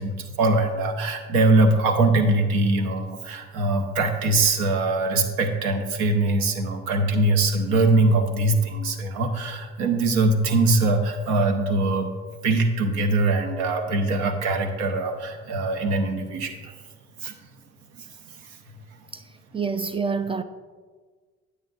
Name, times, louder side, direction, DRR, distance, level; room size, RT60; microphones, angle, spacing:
voice 1, 0.0-16.7 17.2-17.3, right 2 dB, 70° right, 0.8 m, -22 dB
voice 2, 19.5-20.4, right 5 dB, 15° right, 0.3 m, -27 dB
9.6 x 8.0 x 2.4 m
hypercardioid pair, 40°, 37 cm